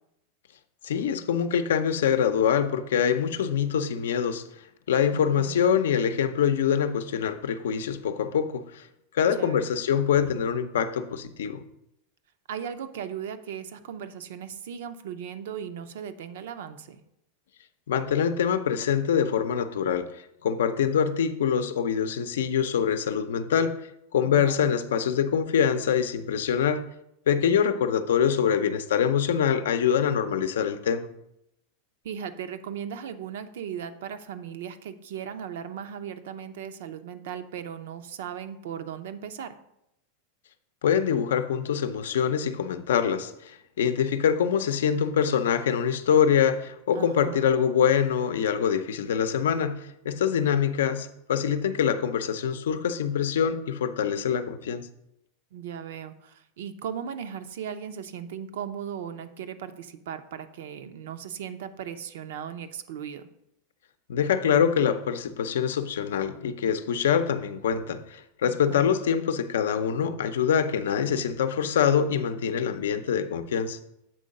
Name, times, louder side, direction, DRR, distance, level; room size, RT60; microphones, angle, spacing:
voice 1, 0.8-4.5 4.9-8.9 9.1-11.6 17.9-26.9 27.3-31.1 40.8-54.9 64.1-73.8, left 8 dB, 85° left, 0.6 m, -25 dB
voice 2, 5.1-5.6 9.4-9.7 12.5-17.0 24.3-24.6 32.0-39.6 46.9-47.5 55.5-63.3 68.5-68.9, right 8 dB, 75° right, 0.6 m, -37 dB
7.7 x 3.8 x 5.3 m
supercardioid pair, 135°, 0 cm